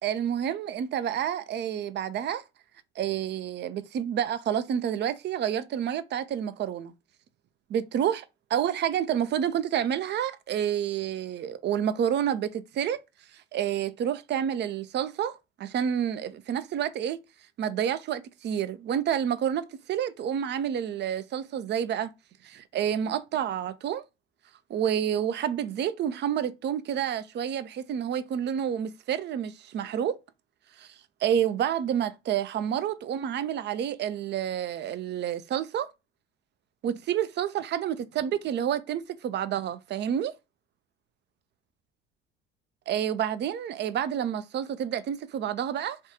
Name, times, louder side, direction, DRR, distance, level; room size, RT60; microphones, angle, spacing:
voice 1, 0.0-2.4 3.0-6.9 7.7-8.2 8.5-13.0 13.3-17.2 17.6-22.1 22.4-24.0 24.7-30.2 30.8-30.9 31.2-35.9 36.8-40.3 42.9-46.0, right 9 dB, 35° right, 0.4 m, -29 dB
3.4 x 2.3 x 2.8 m
hypercardioid pair, 60°, 30 cm